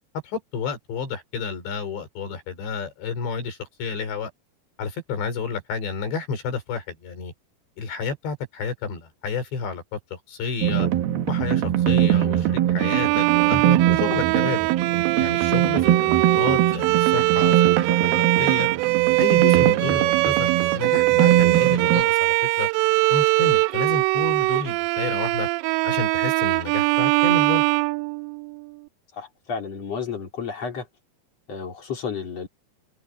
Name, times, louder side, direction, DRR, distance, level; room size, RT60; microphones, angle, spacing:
voice 1, 0.2-4.3 4.8-7.3 7.8-10.9 11.3-14.6 15.2-18.7 19.2-22.7 23.1-25.5 25.9-27.6, left 5 dB, 80° left, 7.0 m, -30 dB
sound 1, 10.6-22.0, right 12 dB, 70° right, 2.7 m, -22 dB
Bowed string instrument, 12.8-28.7, right 24 dB, 85° right, 2.8 m, -22 dB
voice 2, 29.1-30.9 31.5-32.5, left 6 dB, 35° left, 4.6 m, -32 dB
omnidirectional pair, 5.0 m